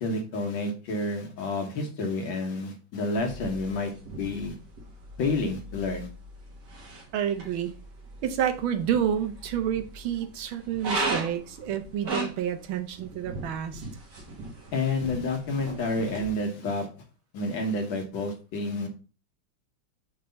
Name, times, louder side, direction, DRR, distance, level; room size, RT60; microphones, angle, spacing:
voice 1, 0.0-4.5 5.2-6.1 14.7-16.9 17.3-18.9, left 2 dB, 65° left, 3 dB, 1.9 m, -29 dB
sound 1, 3.2-16.2, right 2 dB, 55° right, 2.0 m, -38 dB
voice 2, 7.1-7.7 8.2-13.8, right 9 dB, 75° right, 7 dB, 1.6 m, -29 dB
5.6 x 3.4 x 5.1 m, 0.35 s
omnidirectional pair, 2.3 m